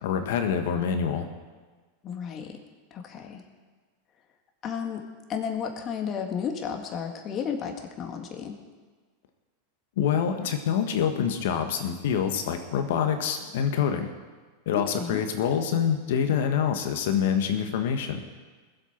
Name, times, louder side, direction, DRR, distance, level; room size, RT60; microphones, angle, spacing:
voice 1, 0.0-1.3 10.0-14.1 14.6-18.2, left 8 dB, 70° left, 6 dB, 1.6 m, -26 dB
voice 2, 2.0-2.6 2.9-3.4 4.6-5.0 5.3-8.5 14.7-15.2, left 7 dB, 40° left, 3 dB, 2.0 m, -33 dB
20.5 x 8.1 x 4.6 m, 1.4 s
hypercardioid pair, 100°, 0 cm